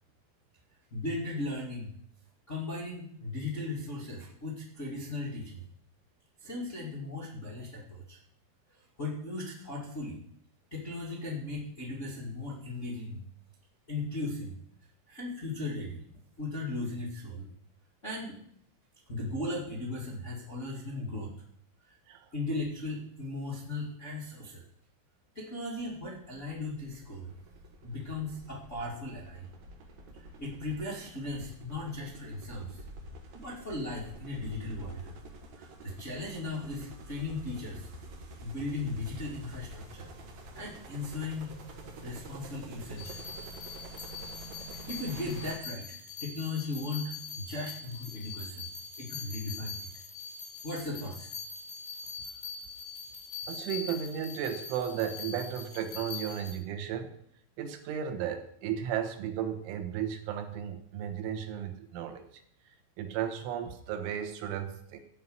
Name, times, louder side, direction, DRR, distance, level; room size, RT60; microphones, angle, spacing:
voice 1, 0.9-1.9 2.5-5.6 6.4-8.2 9.0-10.2 10.7-13.2 13.9-14.5 15.1-16.0 16.4-17.5 18.0-18.4 19.1-21.3 22.3-24.6 25.3-27.3 27.8-29.5 30.1-32.8 33.3-35.1 35.5-37.9 38.4-40.1 40.5-41.6 42.0-43.1 44.9-48.7 49.0-49.8 50.6-51.3, left 2 dB, 30° left, -4 dB, 1.3 m, -37 dB
sound 1, 25.8-45.6, right 1 dB, 55° right, 2.1 m, -48 dB
sound 2, 43.0-56.5, left 5 dB, 70° left, 6.0 m, -43 dB
voice 2, 53.5-57.1 57.6-65.0, right 9 dB, 85° right, 5 dB, 3.7 m, -35 dB
14.0 x 5.7 x 9.4 m, 0.67 s
omnidirectional pair, 5.5 m